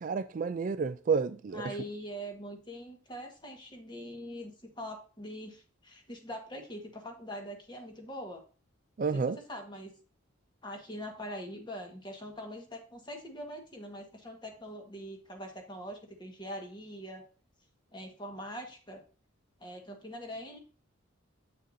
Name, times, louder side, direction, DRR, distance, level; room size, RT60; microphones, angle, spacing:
voice 1, 0.0-1.7 9.0-9.4, right 5 dB, 40° right, 0.3 m, -30 dB
voice 2, 1.5-8.4 9.1-9.9 10.6-17.2 17.9-19.0 19.6-20.6, equal, 20° left, 1.5 m, -43 dB
8.2 x 6.4 x 2.7 m
head